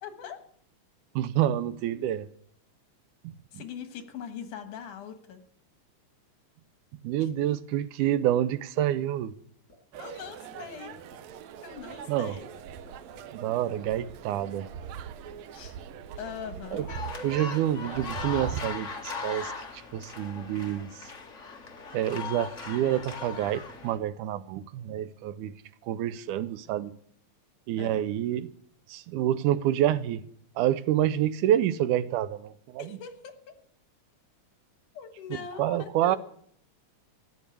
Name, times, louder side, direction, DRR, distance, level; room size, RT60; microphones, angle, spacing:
voice 1, 0.0-0.4 3.5-5.4 10.0-11.0 11.6-12.4 15.5-15.8 16.2-16.9 27.8-28.0 32.8-33.5 34.9-36.2, left 7 dB, 80° left, 3.0 m, -41 dB
voice 2, 1.2-2.3 3.2-3.6 7.0-9.3 12.1-12.4 13.3-14.7 16.7-16.9 17.2-21.1 21.9-27.0 27.7-28.5 28.9-30.3 30.6-33.0 35.3-36.2, right 12 dB, 85° right, 2.2 m, -28 dB
sound 1, 9.7-10.0 10.2-10.6 10.9-11.1 11.5-11.8 12.1-12.2 12.6-13.2 13.5-14.5, left 2 dB, 25° left, 6.5 m, -53 dB
sound 2, 9.9-18.6, right 8 dB, 70° right, 1.9 m, -41 dB
sound 3, 16.9-24.0, left 5 dB, 50° left, 0.9 m, -39 dB
14.0 x 9.4 x 8.3 m
omnidirectional pair, 3.5 m